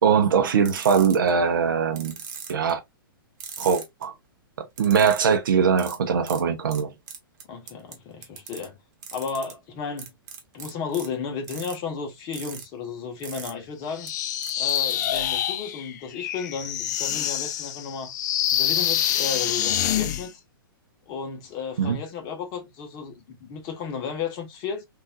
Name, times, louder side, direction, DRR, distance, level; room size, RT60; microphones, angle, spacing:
voice 1, 0.0-2.1 2.5-2.8 3.6-4.1 4.8-6.9 21.8-22.0, right 6 dB, 65° right, 0.8 m, -21 dB
sound 1, 0.6-1.3 2.0-2.7 3.4-4.0 4.8-5.2 5.8-6.0 6.3-6.4 6.7-6.8 7.1-7.9 8.2-8.6 9.0-9.5 10.0-11.1 11.4-11.7 12.3-12.6 13.2-13.5 14.1-14.2 14.4-15.2, right 7 dB, 45° right, 1.1 m, -39 dB
voice 2, 7.5-8.8 9.1-10.1 10.5-14.1 14.6-18.1 18.5-20.4 21.1-24.8, left 6 dB, 35° left, 1.1 m, -33 dB
sound 2, 14.0-20.3, left 11 dB, 50° left, 0.4 m, -26 dB
3.7 x 2.6 x 2.2 m
figure-of-eight pair, 115°, 12 cm